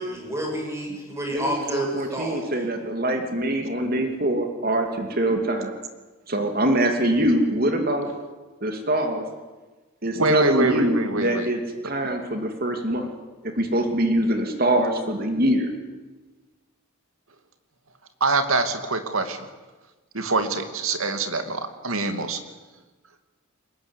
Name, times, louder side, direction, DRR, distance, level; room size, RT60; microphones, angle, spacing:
voice 1, 0.0-2.4, right 1 dB, 15° right, 0 dB, 7.4 m, -29 dB
voice 2, 1.3-5.7 6.3-8.1 8.6-9.2 10.0-13.1 13.4-15.7, right 1 dB, 45° right, 5 dB, 2.6 m, -24 dB
voice 3, 10.2-11.5 18.2-19.5 20.1-22.4, right 3 dB, 75° right, 7 dB, 2.6 m, -24 dB
23.0 x 21.0 x 9.9 m, 1.2 s
head